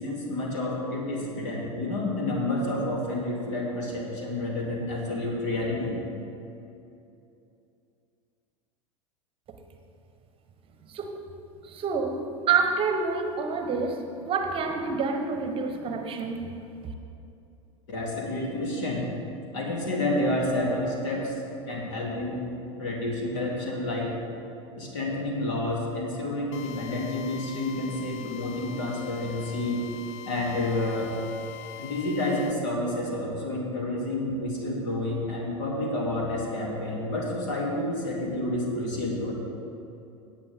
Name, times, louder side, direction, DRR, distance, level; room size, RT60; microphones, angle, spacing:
voice 1, 0.0-6.0 17.9-19.1 19.5-22.5 22.8-24.1 24.8-29.8 30.3-31.1 31.8-39.3, left 1 dB, 60° left, -2 dB, 2.8 m, -29 dB
voice 2, 10.8-11.2 11.6-16.9, right 5 dB, 30° right, 5 dB, 1.0 m, -28 dB
Drill, 26.5-32.5, left 10 dB, 45° left, 0.5 m, -43 dB
17.0 x 8.5 x 3.6 m, 2.7 s
figure-of-eight pair, 85°, 17 cm